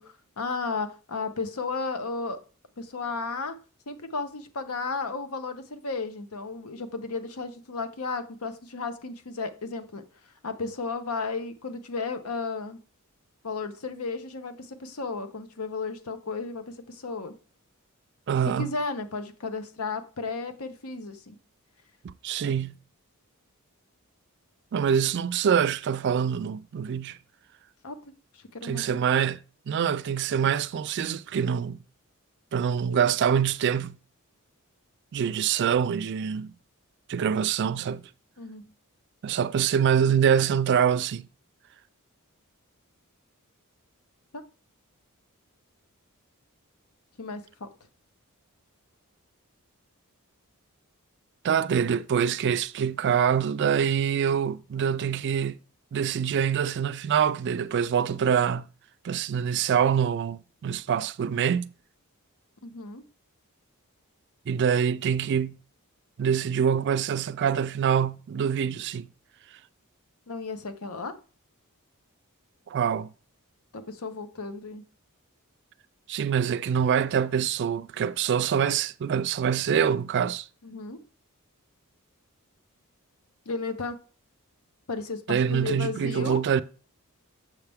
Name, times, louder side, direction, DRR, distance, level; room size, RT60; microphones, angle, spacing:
voice 1, 0.0-2.4 2.8-3.5 3.9-10.0 10.4-12.8 13.4-17.3 18.5-21.3 27.8-28.0 28.3-29.0 38.4-38.7 44.3-44.4 47.2-47.7 62.6-63.1 70.3-71.1 73.7-74.8 80.6-81.0 83.5-84.0 84.9-86.4, left 4 dB, 75° left, 0.9 m, -34 dB
voice 2, 18.3-18.7 22.0-22.8 24.7-27.2 28.6-31.8 32.5-34.0 35.1-36.5 37.1-38.0 39.2-41.3 51.4-55.6 55.9-58.7 59.0-61.7 64.5-65.6 66.2-69.1 72.7-73.1 76.1-80.5 85.3-86.6, right 7 dB, 50° right, 0.3 m, -25 dB
7.3 x 5.7 x 3.5 m
head